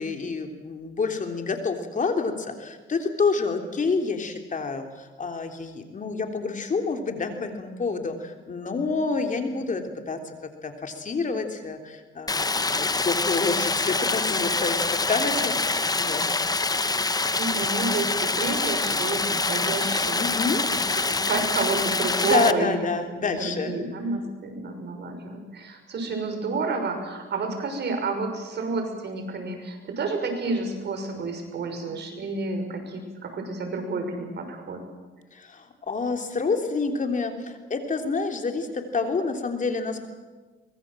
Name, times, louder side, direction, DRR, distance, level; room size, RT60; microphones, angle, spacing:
voice 1, 0.0-16.4 20.2-20.6 22.2-23.7 35.3-40.1, left 4 dB, 40° left, 5 dB, 3.4 m, -28 dB
Stream, 12.3-22.5, left 3 dB, 20° left, 1.1 m, -25 dB
voice 2, 17.4-20.2 20.7-22.8 23.3-34.8, right 3 dB, 60° right, 5 dB, 6.1 m, -30 dB
24.0 x 22.0 x 7.7 m, 1.3 s
cardioid pair, 90°, 20 cm